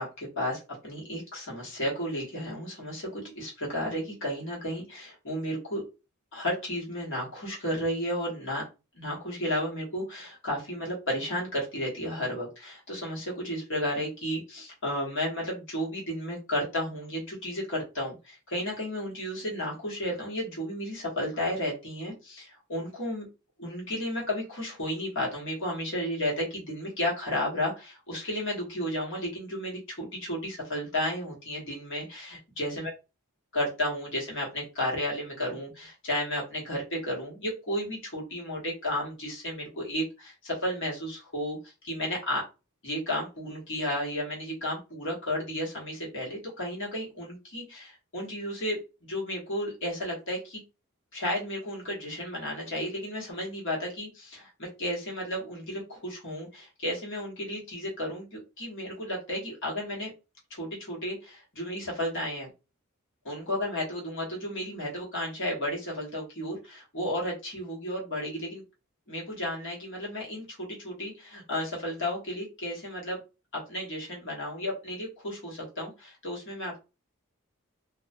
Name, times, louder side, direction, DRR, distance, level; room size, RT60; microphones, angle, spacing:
voice 1, 0.0-5.8 6.3-8.6 8.9-23.3 23.6-32.9 33.5-42.4 42.8-50.6 51.1-60.1 60.5-62.5 63.2-68.6 69.1-73.2 73.5-76.8, left 1 dB, 60° left, -3 dB, 1.2 m, -33 dB
2.4 x 2.1 x 2.5 m, 0.29 s
head